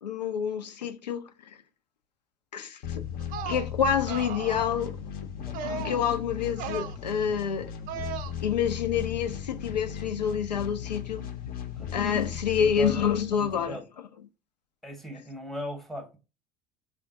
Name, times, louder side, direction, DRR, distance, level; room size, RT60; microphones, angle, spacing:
voice 1, 0.0-1.6 2.5-3.0 3.5-5.0 5.5-7.7 8.4-11.2 11.9-13.8, left 8 dB, 75° left, 0.5 m, -28 dB
sound 1, 2.8-13.8, left 8 dB, 45° left, 0.7 m, -37 dB
sound 2, 3.2-3.7 4.1-4.8 5.5-6.1 6.5-7.0 7.9-8.3, right 8 dB, 40° right, 0.5 m, -36 dB
voice 2, 5.4-5.9 11.8-11.9 12.6-13.0 13.3-13.9 14.8-16.2, equal, ahead, 0.8 m, -39 dB
3.5 x 2.5 x 3.5 m
figure-of-eight pair, 65°, 21 cm